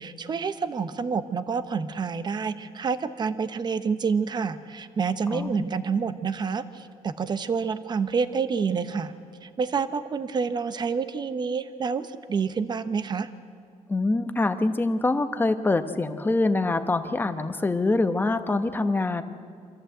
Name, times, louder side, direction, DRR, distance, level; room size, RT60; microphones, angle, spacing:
voice 1, 0.0-9.1 9.4-13.3, right 5 dB, 35° right, 11 dB, 0.9 m, -28 dB
voice 2, 13.9-19.2, left 2 dB, 15° left, 9 dB, 1.0 m, -24 dB
25.5 x 14.0 x 7.9 m, 2.2 s
cardioid pair, 140°, 13 cm